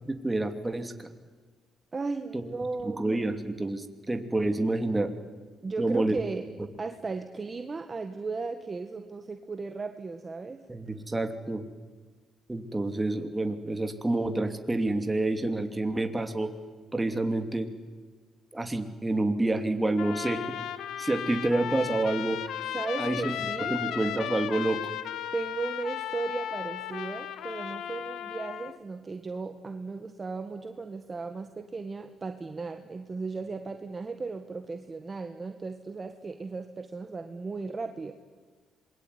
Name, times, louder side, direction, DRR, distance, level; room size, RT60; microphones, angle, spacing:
voice 1, 0.1-1.1 2.3-2.4 2.8-5.1 5.8-6.2 10.7-11.6 12.5-16.5 16.9-17.7 18.5-20.6 21.0-22.4 23.0-23.4 23.7-24.8, right 2 dB, 15° right, 7 dB, 2.8 m, -28 dB
voice 2, 1.9-3.0 5.6-6.4 6.8-10.6 22.7-23.8 25.3-38.1, right 4 dB, 30° right, 6 dB, 1.7 m, -36 dB
Trumpet, 20.0-28.8, left 10 dB, 80° left, 1.5 m, -35 dB
26.5 x 22.0 x 9.7 m, 1.4 s
cardioid pair, 90°, 0 cm